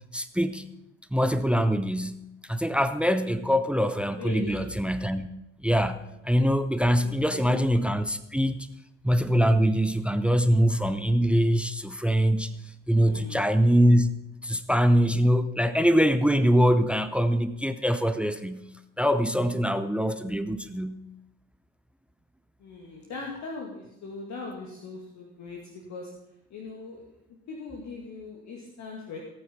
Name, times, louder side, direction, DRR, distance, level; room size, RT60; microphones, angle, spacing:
voice 1, 0.1-0.6 1.1-2.2 2.4-5.3 5.6-8.7 9.0-12.5 12.9-14.1 14.4-18.6 19.0-21.0, equal, 5° right, 13 dB, 0.8 m, -23 dB
voice 2, 4.2-4.7 7.0-7.6 12.9-13.4 22.6-26.1 26.5-27.0 27.5-29.2, left 3 dB, 50° left, -1 dB, 2.5 m, -40 dB
18.0 x 8.7 x 5.4 m, 0.86 s
figure-of-eight pair, 55°, 37 cm